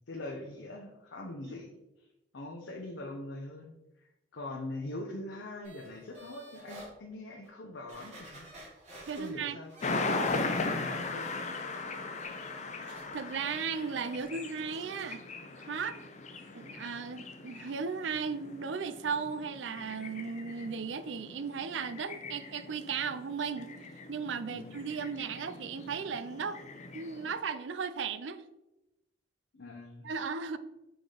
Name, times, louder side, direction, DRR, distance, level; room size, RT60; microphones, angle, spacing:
voice 1, 0.1-2.1 2.3-8.7 9.1-11.6 24.5-24.8 29.5-30.1, left 2 dB, 90° left, 0 dB, 0.8 m, -43 dB
voice 2, 1.2-1.5 9.1-9.6 13.1-15.2 15.6-16.0 16.5-23.7 24.1-26.6 26.9-28.4 30.0-30.6, right 5 dB, 85° right, 13 dB, 0.5 m, -36 dB
sound 1, 5.6-6.9 7.4-7.5 7.9-10.8 11.2-14.3 14.6-14.9 15.3-15.4, equal, 40° right, 2.5 m, -52 dB
sound 2, 9.8-27.4, left 3 dB, 40° left, 0.7 m, -39 dB
6.1 x 3.9 x 5.0 m, 0.96 s
head